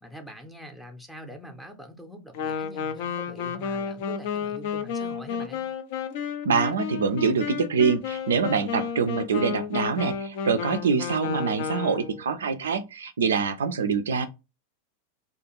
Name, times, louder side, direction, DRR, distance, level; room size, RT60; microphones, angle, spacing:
voice 1, 0.0-5.6, equal, 5° left, 0.6 m, -44 dB
Wind instrument woodwind instrument, 2.3-12.2, left 7 dB, 50° left, 0.4 m, -32 dB
voice 2, 6.4-14.3, right 5 dB, 65° right, 0.3 m, -25 dB
2.4 x 2.3 x 2.8 m
figure-of-eight pair, 90°, 0 cm